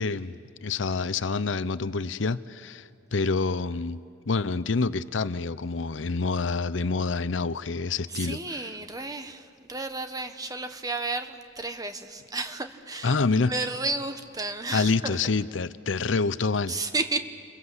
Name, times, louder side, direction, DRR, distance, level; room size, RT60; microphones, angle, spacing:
voice 1, 0.0-4.0 4.3-8.7 13.0-13.5 14.7-16.8, left 4 dB, 85° left, 15 dB, 0.7 m, -27 dB
voice 2, 8.1-13.2 13.4-15.2 16.7-17.2, right 3 dB, 20° right, 8 dB, 1.3 m, -32 dB
30.0 x 22.5 x 8.1 m, 2.5 s
head